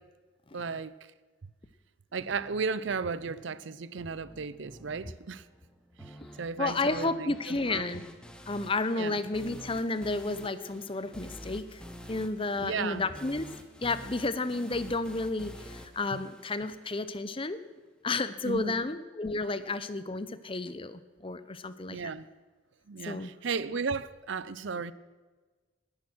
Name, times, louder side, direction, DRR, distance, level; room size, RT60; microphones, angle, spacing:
voice 1, 0.5-0.9 2.1-5.4 6.0-7.9 9.0-9.2 12.6-13.0 16.1-16.2 18.4-18.8 21.9-22.3 22.9-24.9, right 5 dB, 65° right, 0.6 m, -35 dB
sound 1, 2.2-17.2, equal, 5° left, 1.2 m, -49 dB
voice 2, 6.6-8.0 8.5-11.8 12.1-13.5 13.8-17.6 18.0-22.1 23.1-23.3, left 3 dB, 25° left, 0.7 m, -32 dB
19.5 x 10.5 x 6.2 m
head